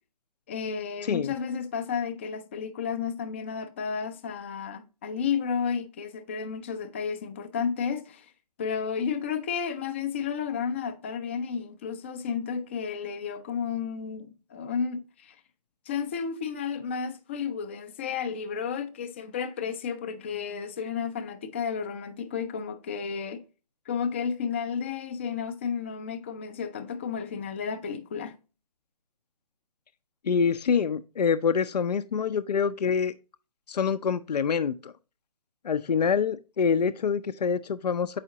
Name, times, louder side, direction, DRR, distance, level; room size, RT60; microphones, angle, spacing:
voice 1, 0.5-8.3 8.6-15.4 15.9-23.5 23.9-28.4, left 6 dB, 20° left, 0.4 m, -32 dB
voice 2, 1.0-1.3 30.2-33.1 33.7-34.9 35.6-38.2, left 6 dB, 80° left, 0.5 m, -26 dB
7.4 x 4.9 x 2.7 m
figure-of-eight pair, 145°, 21 cm